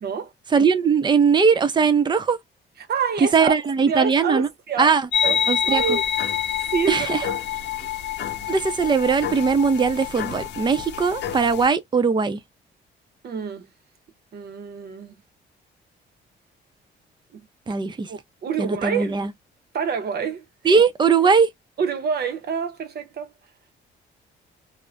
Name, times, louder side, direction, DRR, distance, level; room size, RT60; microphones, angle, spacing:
voice 1, 0.0-0.3 2.8-3.5 3.9-6.1 6.7-7.3 13.2-13.7 14.3-15.2 17.3-17.4 18.1-19.2 19.7-20.4 21.8-23.3, right 6 dB, 55° right, 0.8 m, -27 dB
voice 2, 0.5-2.4 3.3-4.5 4.8-5.0 5.5-6.0 6.9-7.2 8.5-12.4 17.7-18.1 18.6-19.3 20.6-21.5, right 5 dB, 25° right, 0.5 m, -19 dB
sound 1, 5.1-11.7, left 9 dB, 65° left, 0.8 m, -27 dB
2.5 x 2.0 x 3.3 m
cardioid pair, 90°, 20 cm